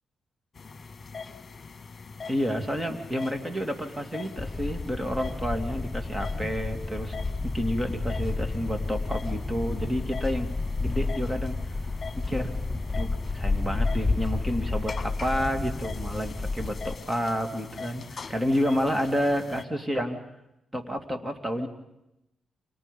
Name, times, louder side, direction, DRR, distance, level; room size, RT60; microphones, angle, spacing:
sound 1, 0.6-19.7, left 5 dB, 40° left, 1.8 m, -43 dB
voice 1, 2.3-7.1 7.4-10.5 10.8-11.6 12.2-12.5 12.9-20.2 20.7-21.7, equal, 20° right, 6 dB, 2.8 m, -30 dB
sound 2, 4.4-17.0, left 3 dB, 15° left, 0.9 m, -31 dB
29.5 x 26.0 x 5.5 m, 0.88 s
cardioid pair, 80°, 0 cm